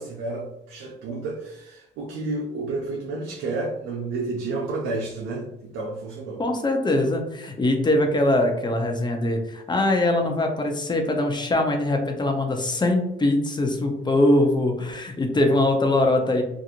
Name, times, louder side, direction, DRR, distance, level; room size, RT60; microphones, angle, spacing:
voice 1, 0.0-6.4 14.0-14.1, right 3 dB, 85° right, -1 dB, 0.5 m, -31 dB
voice 2, 6.4-16.4, left 1 dB, 20° left, 3 dB, 0.6 m, -22 dB
2.9 x 2.5 x 2.5 m, 0.86 s
cardioid pair, 90°, 20 cm